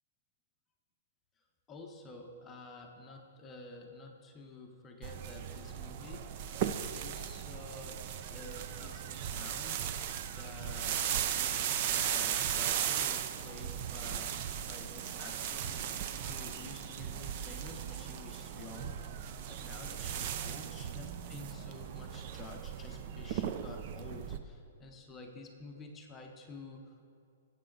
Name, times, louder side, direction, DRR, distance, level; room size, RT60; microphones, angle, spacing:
voice 1, 1.4-6.3 6.9-10.1 10.3-11.0 11.3-19.2 19.5-27.0, left 3 dB, 10° left, 2 dB, 0.8 m, -50 dB
sound 1, 5.0-24.4, right 9 dB, 30° right, 0.4 m, -37 dB
21.0 x 7.9 x 3.8 m, 2.4 s
hypercardioid pair, 175°, 0 cm